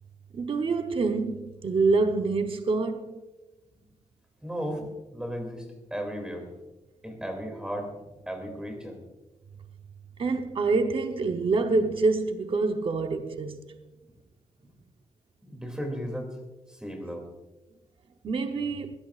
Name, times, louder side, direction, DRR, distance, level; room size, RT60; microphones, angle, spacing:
voice 1, 0.3-3.2 10.2-13.8 18.2-18.9, right 3 dB, 40° right, 0.8 m, -26 dB
voice 2, 4.4-4.9 5.1-6.5 7.0-7.9 8.3-9.0 15.4-16.4 16.7-17.3, equal, 5° right, 2.5 m, -35 dB
21.0 x 17.0 x 2.4 m
wide cardioid pair, 180°, 14 cm